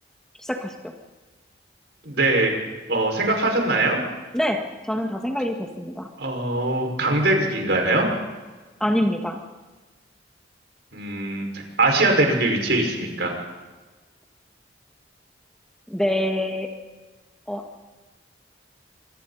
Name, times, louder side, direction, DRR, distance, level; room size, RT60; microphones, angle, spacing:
voice 1, 0.4-0.9 4.3-6.1 8.8-9.4 15.9-16.7 17.5-17.7, equal, 5° left, 2 dB, 1.8 m, -25 dB
voice 2, 2.0-2.5 2.9-4.0 6.2-8.1 10.9-11.5 11.8-13.3, right 2 dB, 70° right, 1 dB, 5.6 m, -21 dB
26.5 x 25.5 x 4.2 m, 1.2 s
head